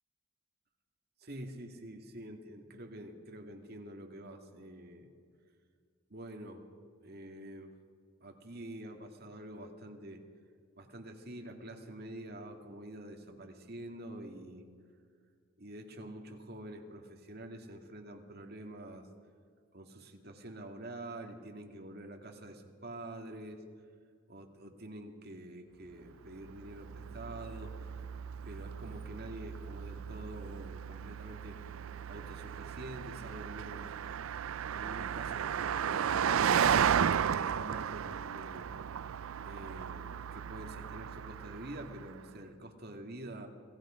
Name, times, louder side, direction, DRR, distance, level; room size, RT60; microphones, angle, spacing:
voice 1, 1.2-5.1 6.1-6.6 7.0-7.7 8.2-10.2 10.8-14.7 15.6-19.1 19.7-23.6 24.3-27.7 28.5-31.8 32.0-33.9 34.7-36.6 37.1-38.7 39.4-43.5, right 1 dB, 50° right, 3 dB, 2.3 m, -47 dB
Car passing by, 26.4-42.2, right 8 dB, 80° right, 0.4 m, -34 dB
28.0 x 18.0 x 5.1 m, 2.1 s
head